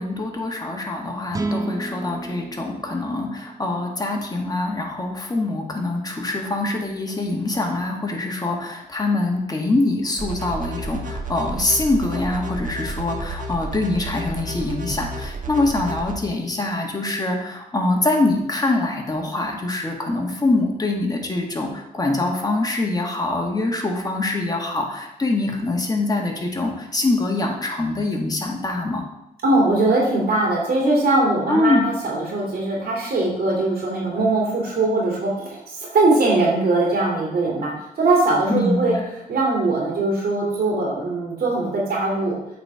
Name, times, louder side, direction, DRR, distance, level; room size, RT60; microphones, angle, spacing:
voice 1, 0.0-29.0 31.5-31.9 38.5-39.0, left 2 dB, 25° left, 1 dB, 1.8 m, -24 dB
sound 1, 1.3-4.6, right 2 dB, 20° right, 0.7 m, -32 dB
sound 2, 10.2-16.2, right 1 dB, 55° right, 1.2 m, -31 dB
voice 2, 29.4-38.9 39.3-42.4, right 2 dB, 70° right, -3 dB, 2.6 m, -21 dB
8.1 x 4.4 x 4.9 m, 0.85 s
cardioid pair, 70°, 16 cm